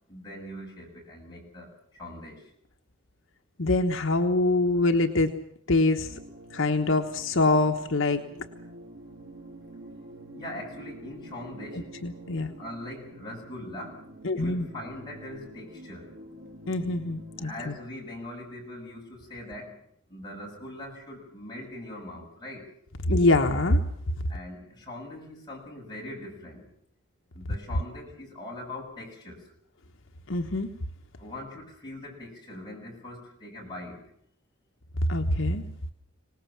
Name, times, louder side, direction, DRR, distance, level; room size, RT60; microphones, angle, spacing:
voice 1, 0.1-2.5 10.3-11.9 12.6-14.0 14.3-16.1 17.4-19.8 20.1-22.7 24.3-26.7 27.3-29.5 31.2-34.1, left 1 dB, 20° left, -2 dB, 7.1 m, -41 dB
voice 2, 3.6-5.3 5.7-6.2 6.5-8.2 11.7-12.5 14.2-14.7 16.7-17.7 23.1-23.8 30.3-30.7 35.1-35.6, left 2 dB, 70° left, 4 dB, 1.2 m, -24 dB
sound 1, 6.0-17.8, right 1 dB, 80° right, 4.0 m, -47 dB
25.5 x 18.5 x 7.4 m, 0.69 s
head